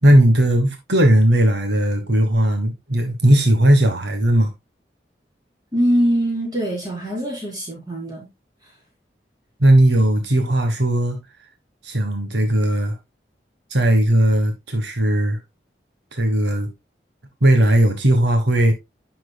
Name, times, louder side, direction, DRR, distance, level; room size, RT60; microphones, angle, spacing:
voice 1, 0.0-4.5 9.6-11.2 11.8-13.0 13.7-15.4 16.1-16.7 17.4-18.7, right 1 dB, 80° right, 1.4 m, -17 dB
voice 2, 5.7-8.3 8.6-8.7, equal, 20° right, 4.1 m, -22 dB
10.0 x 6.0 x 2.3 m
head